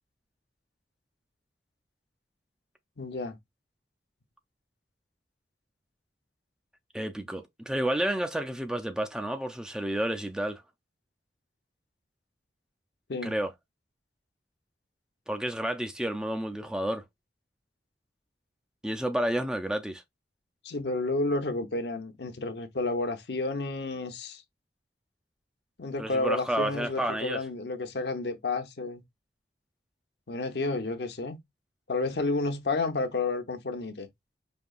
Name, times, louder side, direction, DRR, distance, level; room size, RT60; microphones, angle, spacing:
voice 1, 3.0-3.4 13.1-13.3 20.6-24.4 25.8-29.0 30.3-31.4 31.9-34.1, left 3 dB, 70° left, 0.8 m, -31 dB
voice 2, 6.9-10.6 13.2-13.5 15.3-17.0 18.8-20.0 26.0-27.4, right 1 dB, 5° right, 0.4 m, -30 dB
5.2 x 2.8 x 2.4 m
head